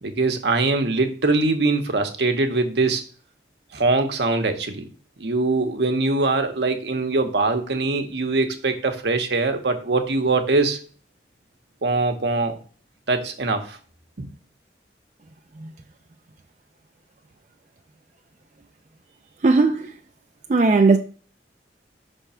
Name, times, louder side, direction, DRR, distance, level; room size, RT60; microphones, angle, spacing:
voice 1, 0.0-3.0 3.7-4.9 5.2-10.8 11.8-12.6 13.1-13.8, right 3 dB, 70° right, 0.9 m, -22 dB
voice 2, 19.4-19.9 20.5-21.0, right 3 dB, 40° right, 0.4 m, -17 dB
5.8 x 3.5 x 5.5 m
head